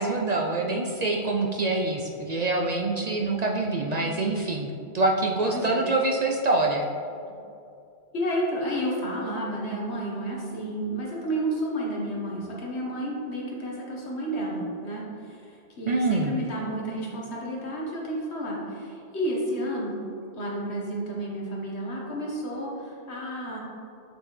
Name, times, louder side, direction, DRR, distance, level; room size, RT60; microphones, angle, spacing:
voice 1, 0.0-6.9 15.9-16.3, right 2 dB, 55° right, 0 dB, 0.5 m, -25 dB
voice 2, 3.9-4.3 5.5-5.8 8.1-20.0 20.3-23.6, right 1 dB, 70° left, -3 dB, 1.6 m, -31 dB
6.9 x 6.1 x 3.2 m, 2.6 s
omnidirectional pair, 1.2 m